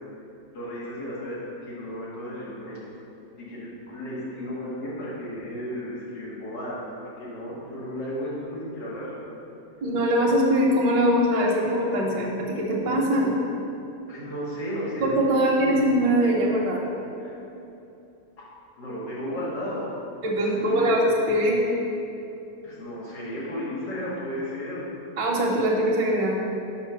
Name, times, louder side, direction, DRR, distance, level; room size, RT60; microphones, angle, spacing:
voice 1, 0.5-2.8 3.4-9.1 14.1-15.8 17.2-17.3 18.4-18.5 18.8-19.9 20.5-20.9 22.6-24.9, equal, 85° left, -8 dB, 2.6 m, -34 dB
voice 2, 9.8-13.3 15.0-16.8 20.2-21.6 25.2-26.3, equal, 75° right, -3 dB, 1.5 m, -22 dB
5.8 x 5.3 x 5.7 m, 2.8 s
omnidirectional pair, 1.9 m